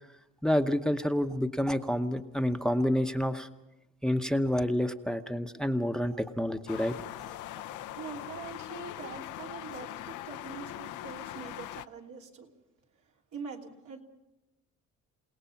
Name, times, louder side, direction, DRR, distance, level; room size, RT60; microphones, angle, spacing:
voice 1, 0.4-3.5 4.0-6.9, equal, ahead, 8 dB, 0.9 m, -28 dB
sound 1, 6.7-11.9, left 13 dB, 85° left, 0.7 m, -41 dB
voice 2, 7.7-12.5 13.3-14.0, right 6 dB, 75° right, 0 dB, 3.1 m, -44 dB
29.0 x 18.0 x 5.8 m, 0.95 s
cardioid pair, 90°, 30 cm